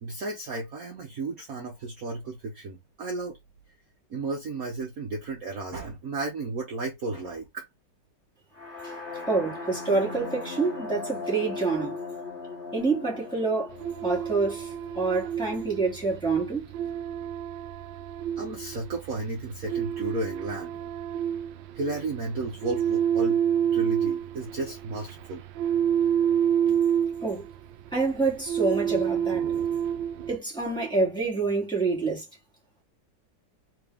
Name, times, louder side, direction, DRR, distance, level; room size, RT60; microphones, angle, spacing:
voice 1, 0.0-3.4 4.1-7.6 18.4-20.7 21.7-23.4 23.7-25.4, right 3 dB, 50° right, 1.3 m, -33 dB
sound 1, 8.5-16.4, left 4 dB, 30° left, 1.6 m, -39 dB
voice 2, 9.3-12.0 12.7-13.7 14.0-16.6 26.7-26.8 27.2-27.4 27.9-29.4 30.3-32.2, right 3 dB, ahead, 2.3 m, -27 dB
sound 2, 13.7-30.4, right 9 dB, 75° right, 1.2 m, -29 dB
3.8 x 3.7 x 3.5 m
omnidirectional pair, 2.2 m